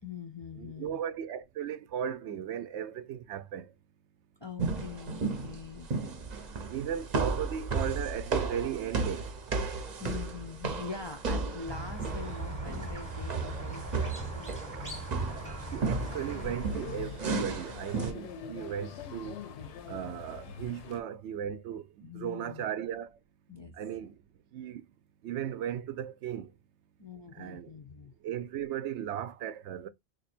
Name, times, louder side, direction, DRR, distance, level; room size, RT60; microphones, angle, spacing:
voice 1, 0.0-1.0 4.4-5.9 10.0-15.1 15.4-15.7 22.0-22.7 23.5-23.8 27.0-28.1, left 4 dB, 40° left, 0.4 m, -43 dB
voice 2, 0.6-3.7 6.7-9.3 15.7-19.4 19.9-23.1 23.7-24.2 24.5-24.9 25.2-26.5 27.3-27.7 28.2-29.9, right 9 dB, 85° right, 0.9 m, -36 dB
sound 1, 4.6-18.1, right 4 dB, 45° right, 0.7 m, -34 dB
Squeak, 11.7-16.7, right 2 dB, 20° right, 0.9 m, -40 dB
sound 2, 16.0-21.0, left 7 dB, 90° left, 0.9 m, -44 dB
3.0 x 2.6 x 4.2 m
omnidirectional pair, 1.1 m